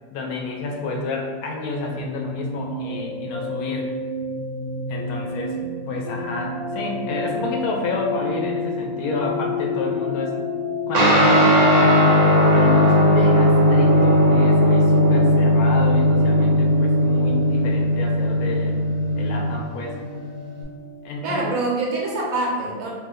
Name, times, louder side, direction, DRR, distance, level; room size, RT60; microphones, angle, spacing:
voice 1, 0.1-3.9 4.9-5.6 5.9-10.4 10.9-12.1 12.5-18.7 19.1-20.0 21.0-21.6, left 3 dB, 85° left, 1 dB, 1.1 m, -29 dB
sound 1, 2.0-21.5, left 2 dB, 45° left, 0.5 m, -30 dB
Guitar, 10.9-20.6, equal, 60° right, 0.4 m, -17 dB
voice 2, 21.2-22.9, right 2 dB, 75° right, -3 dB, 1.2 m, -25 dB
2.9 x 2.1 x 3.5 m, 1.5 s
omnidirectional pair, 1.5 m